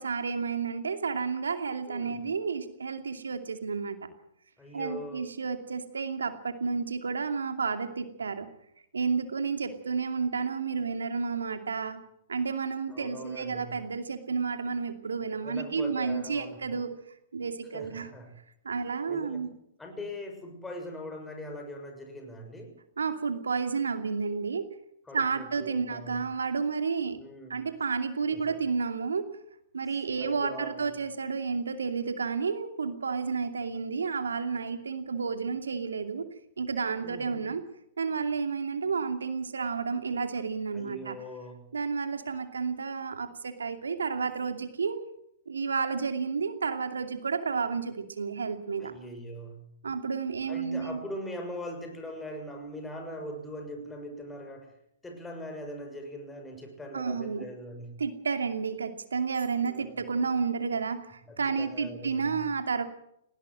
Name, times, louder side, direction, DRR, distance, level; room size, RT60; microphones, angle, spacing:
voice 1, 0.0-4.0 4.7-8.5 8.9-12.0 12.3-16.9 17.3-18.1 18.6-19.5 23.0-24.6 25.1-27.2 27.5-29.3 29.7-36.3 36.6-37.6 38.0-41.2 41.7-45.0 45.5-48.9 49.8-51.0 56.9-57.5 58.0-62.8, right 5 dB, 85° right, 8 dB, 2.6 m, -31 dB
voice 2, 1.9-2.2 4.6-5.2 12.9-13.7 15.4-16.8 17.7-18.3 19.1-19.5 19.8-22.8 25.1-26.2 27.1-27.6 28.3-28.6 29.9-30.9 37.0-37.5 40.7-41.7 48.8-49.7 50.5-54.7 55.0-58.0 59.7-60.1 61.3-62.4, equal, 10° left, 4 dB, 6.4 m, -41 dB
19.5 x 17.5 x 7.7 m, 0.77 s
hypercardioid pair, 120°, 0 cm